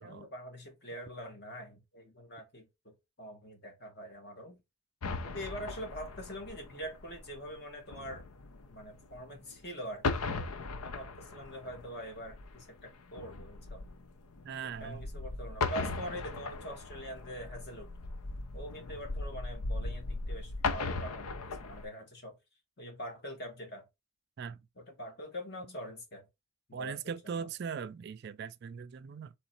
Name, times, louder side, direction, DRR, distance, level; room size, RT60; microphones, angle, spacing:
voice 1, 0.0-4.6 5.2-8.2 8.7-10.5 10.8-13.8 14.6-17.9 18.5-22.4 22.8-23.8 24.8-26.2 26.7-27.0 27.2-27.5, equal, 50° left, 1.5 m, -44 dB
sound 1, 5.0-9.6 9.9-21.8, left 3 dB, 90° left, 0.6 m, -38 dB
voice 2, 14.4-15.0 24.4-24.6 26.7-29.3, right 6 dB, 50° right, 0.3 m, -40 dB
3.9 x 3.1 x 4.2 m
head